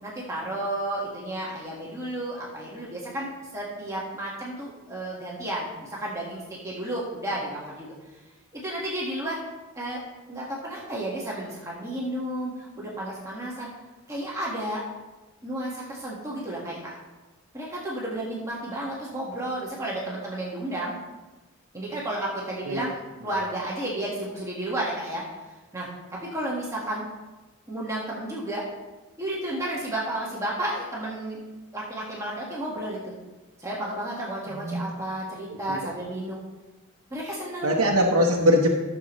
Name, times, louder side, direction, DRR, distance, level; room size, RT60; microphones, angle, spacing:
voice 1, 0.0-7.9 8.5-9.4 9.7-10.0 10.3-13.7 14.1-14.8 15.4-16.9 17.5-21.0 21.7-22.9 23.2-25.2 25.7-27.0 27.7-28.6 29.2-31.4 31.7-33.1 33.6-36.4 37.1-37.8, right 1 dB, 15° right, -5 dB, 1.6 m, -32 dB
voice 2, 34.5-34.9 35.5-35.8 37.6-38.7, equal, 90° right, -2 dB, 1.1 m, -22 dB
14.0 x 6.9 x 3.1 m, 1.1 s
head